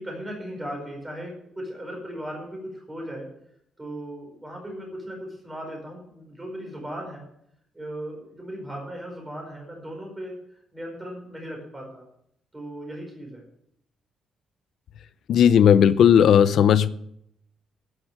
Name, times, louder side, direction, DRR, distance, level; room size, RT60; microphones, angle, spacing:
voice 1, 0.0-3.3 3.8-7.3 7.7-10.4 10.7-12.0 12.5-13.4, equal, 10° right, 4.9 m, -37 dB
voice 2, 15.3-16.9, left 8 dB, 55° left, 0.6 m, -16 dB
11.5 x 9.7 x 7.4 m
cardioid pair, 180°, 0 cm